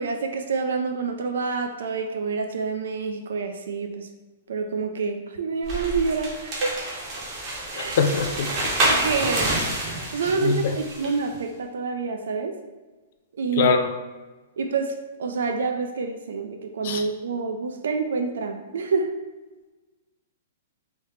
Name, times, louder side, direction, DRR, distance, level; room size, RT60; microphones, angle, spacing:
voice 1, 0.0-4.1 4.5-6.8 7.7-8.0 8.4-9.6 10.1-12.6 13.3-13.8 14.6-19.1, right 4 dB, 80° right, 5 dB, 0.3 m, -27 dB
sound 1, 5.6-11.2, right 1 dB, 25° right, 0.7 m, -28 dB
voice 2, 7.8-8.5 10.4-10.6 13.6-13.8 16.8-17.0, left 5 dB, 40° left, 5 dB, 0.3 m, -22 dB
3.2 x 2.7 x 3.2 m, 1.2 s
hypercardioid pair, 175°, 0 cm